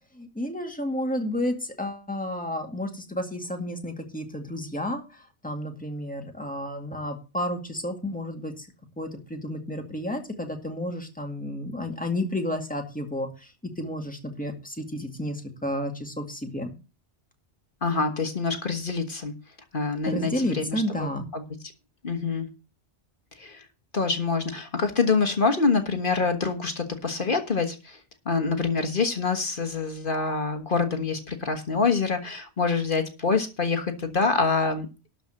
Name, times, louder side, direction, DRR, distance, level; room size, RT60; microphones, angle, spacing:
voice 1, 0.1-8.7 9.0-16.7 20.1-21.3, left 1 dB, 5° left, 3 dB, 2.0 m, -31 dB
voice 2, 17.8-19.3 19.7-21.4 22.0-22.5 23.4-23.6 23.9-28.0 28.2-34.9, left 4 dB, 50° left, 7 dB, 1.5 m, -26 dB
12.5 x 5.0 x 7.6 m, 0.30 s
omnidirectional pair, 1.1 m